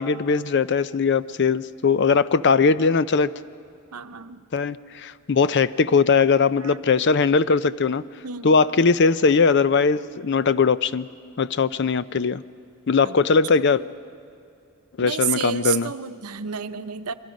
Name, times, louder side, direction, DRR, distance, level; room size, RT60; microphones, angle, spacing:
voice 1, 0.0-3.3 4.5-8.0 8.4-11.1 11.4-12.4 12.9-13.8 15.0-15.9, left 5 dB, 50° left, 16 dB, 0.5 m, -20 dB
voice 2, 3.9-4.5 6.6-6.8 8.2-8.6 13.0-13.2 15.0-17.1, right 8 dB, 85° right, 10 dB, 0.8 m, -30 dB
29.0 x 22.5 x 5.3 m, 2.5 s
head